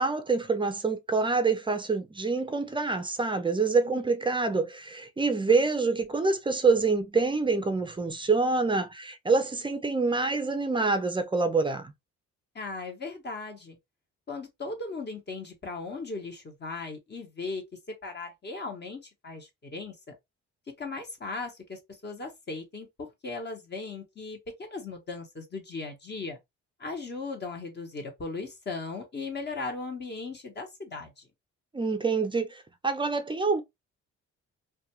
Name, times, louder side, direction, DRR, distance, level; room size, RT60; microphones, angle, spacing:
voice 1, 0.0-11.9 31.7-33.6, right 4 dB, 15° right, 0.4 m, -26 dB
voice 2, 12.5-13.8 14.3-19.9 20.8-26.4 26.8-31.3, left 3 dB, 35° left, 0.9 m, -38 dB
2.3 x 2.2 x 2.9 m
cardioid pair, 90°, 30 cm